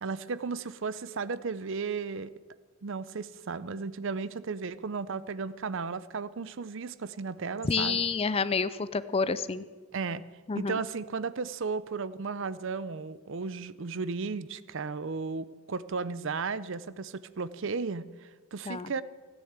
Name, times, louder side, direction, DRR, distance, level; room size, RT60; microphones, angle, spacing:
voice 1, 0.0-2.3 2.8-8.0 9.9-10.2 10.5-19.0, right 4 dB, 60° right, 16 dB, 0.6 m, -34 dB
voice 2, 7.6-9.6 10.5-10.8 18.7-18.9, left 4 dB, 25° left, 15 dB, 0.4 m, -29 dB
15.0 x 10.0 x 8.0 m, 1.4 s
head